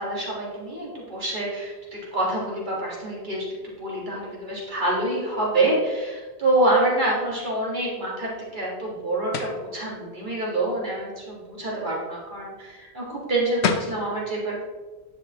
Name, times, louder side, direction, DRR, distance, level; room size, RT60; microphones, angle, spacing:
voice 1, 0.0-14.6, right 2 dB, 50° right, -4 dB, 1.9 m, -26 dB
sound 1, 9.3-9.6 13.3-13.4 13.6-14.0, left 6 dB, 85° left, 1.0 m, -26 dB
9.8 x 5.9 x 2.9 m, 1.3 s
omnidirectional pair, 1.1 m